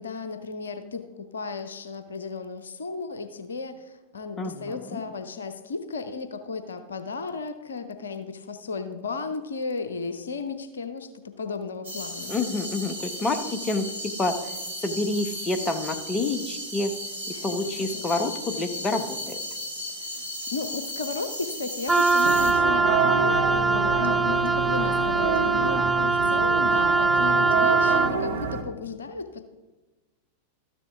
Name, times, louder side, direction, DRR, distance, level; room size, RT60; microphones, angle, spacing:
voice 1, 0.0-11.1 11.4-12.3 17.3-17.5 17.7-18.0 19.9-20.2 20.5-29.4, left 4 dB, 70° left, 9 dB, 0.7 m, -34 dB
voice 2, 4.4-5.0 12.3-14.5 14.8-16.9 17.4-19.4, left 2 dB, 20° left, 8 dB, 1.0 m, -28 dB
sound 1, 11.8-22.5, equal, 80° right, 2.0 m, -35 dB
Wind instrument woodwind instrument, 21.9-28.2, right 3 dB, 5° right, 0.3 m, -22 dB
sound 2, 22.2-28.6, right 5 dB, 60° right, 1.1 m, -28 dB
13.0 x 9.9 x 3.5 m, 1.2 s
figure-of-eight pair, 90°, 0 cm